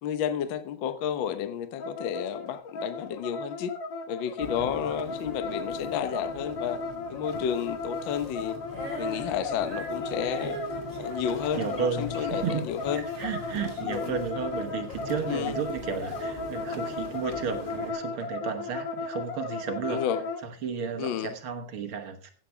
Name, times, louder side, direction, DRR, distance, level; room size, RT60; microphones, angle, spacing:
voice 1, 0.0-3.7 4.1-6.8 7.1-8.6 9.0-10.6 11.0-13.0 13.8-14.2 15.3-15.6 19.9-20.3 21.0-21.3, left 9 dB, 85° left, 11 dB, 1.0 m, -31 dB
sound 1, 1.8-20.4, left 3 dB, 60° left, 1.2 m, -35 dB
sound 2, 4.4-17.9, left 2 dB, 30° left, 0.9 m, -43 dB
Female singing, 8.7-12.5 12.8-14.9, right 2 dB, 40° right, 5.9 m, -42 dB
voice 2, 11.5-12.7 12.9-20.0 20.4-22.3, right 6 dB, 55° right, 5 dB, 1.6 m, -33 dB
15.5 x 8.4 x 3.4 m, 0.42 s
omnidirectional pair, 3.6 m